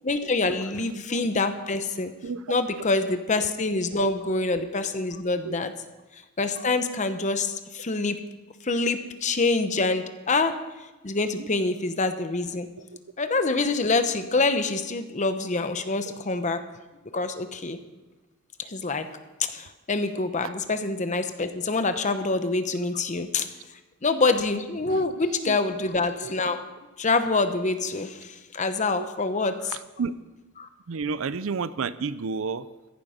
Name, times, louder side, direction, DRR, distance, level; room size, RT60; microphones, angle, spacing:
voice 1, 0.0-2.1 2.5-5.7 6.1-8.2 8.6-10.6 11.0-12.7 13.2-16.6 17.1-17.8 18.6-19.1 19.5-23.5 24.0-26.6 27.0-29.8 30.6-30.7, left 3 dB, 35° left, 9 dB, 0.9 m, -26 dB
voice 2, 30.9-32.7, right 5 dB, 70° right, 16 dB, 0.5 m, -30 dB
15.0 x 10.5 x 5.1 m, 1.1 s
head